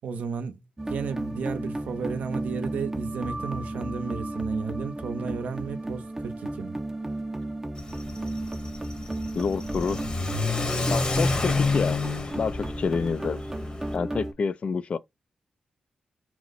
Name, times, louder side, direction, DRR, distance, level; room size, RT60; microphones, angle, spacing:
voice 1, 0.0-0.6 0.9-6.8, right 5 dB, 85° right, 0.6 m, -33 dB
sound 1, 0.8-14.3, right 1 dB, 15° right, 0.4 m, -34 dB
Car / Accelerating revving vroom, 7.8-13.9, left 3 dB, 35° left, 1.0 m, -29 dB
voice 2, 9.4-10.1 10.9-12.0 12.4-13.4 13.9-15.0, left 5 dB, 50° left, 0.3 m, -28 dB
2.8 x 2.0 x 3.9 m
cardioid pair, 90°, 3 cm